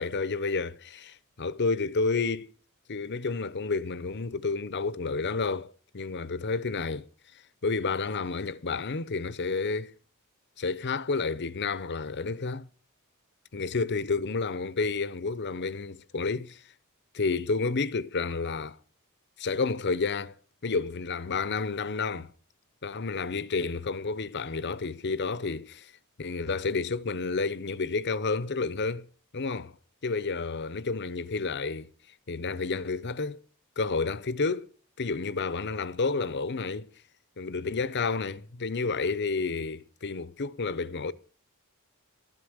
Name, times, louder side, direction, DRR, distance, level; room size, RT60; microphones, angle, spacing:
voice 1, 0.0-2.5 2.9-7.1 7.6-9.9 10.6-12.7 13.5-16.6 17.1-18.8 19.4-20.4 20.6-22.3 22.8-25.9 26.2-29.1 29.3-29.7 30.0-31.9 32.3-33.4 33.8-34.7 35.0-36.9 37.4-41.1, left 4 dB, 50° left, 0.8 m, -30 dB
12.5 x 11.5 x 6.4 m
head